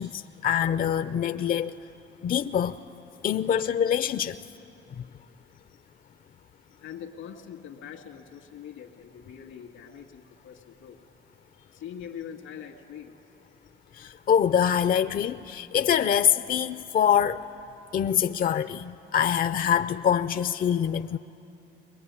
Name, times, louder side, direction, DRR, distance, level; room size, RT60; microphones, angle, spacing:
voice 1, 0.0-1.8 2.2-2.8 3.2-4.4 5.0-5.1 13.9-17.4 17.9-21.2, left 9 dB, 45° left, 11 dB, 0.5 m, -25 dB
voice 2, 6.8-11.0 11.5-13.1, left 8 dB, 90° left, 5 dB, 2.0 m, -43 dB
23.0 x 21.5 x 9.6 m, 2.8 s
cardioid pair, 90°, 20 cm